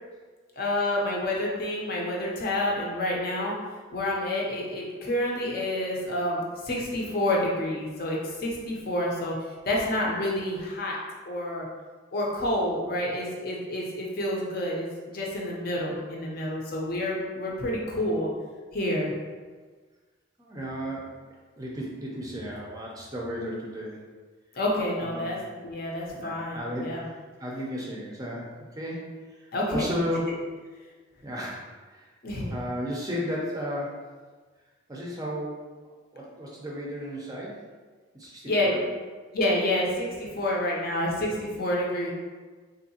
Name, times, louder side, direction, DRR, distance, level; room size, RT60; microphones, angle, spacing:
voice 1, 0.6-3.5 3.9-9.4 9.6-11.0 11.3-11.7 12.1-18.3 18.7-19.1 24.5-27.1 29.5-29.9 32.2-32.5 38.4-38.8 39.3-42.1, left 1 dB, 50° left, -3 dB, 0.6 m, -28 dB
voice 2, 20.4-21.1 21.6-24.1 25.0-25.3 26.1-27.1 27.4-30.6 31.2-32.1 32.5-34.1 34.9-35.7 36.1-37.6 38.1-38.8, equal, 20° right, -3 dB, 0.5 m, -34 dB
3.6 x 2.7 x 2.7 m, 1.4 s
head